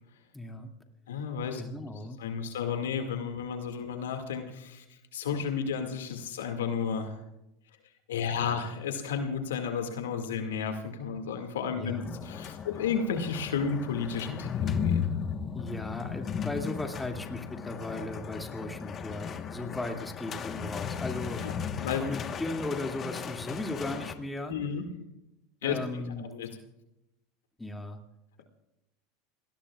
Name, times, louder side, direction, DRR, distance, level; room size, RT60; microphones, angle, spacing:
voice 1, 0.3-0.7 1.5-2.2 11.7-12.1 15.5-21.4 22.0-24.5 25.6-26.3 27.6-28.0, left 2 dB, 10° left, 3 dB, 2.4 m, -37 dB
voice 2, 1.1-1.6 2.2-4.8 5.1-7.2 8.1-15.1 21.4-21.5 21.8-22.1 24.5-24.9 25.6-25.8 26.2-26.5, left 6 dB, 85° left, 5 dB, 2.2 m, -32 dB
sound 1, 11.8-24.1, left 7 dB, 35° left, 1.3 m, -35 dB
28.5 x 19.5 x 2.4 m, 0.91 s
hypercardioid pair, 100°, 0 cm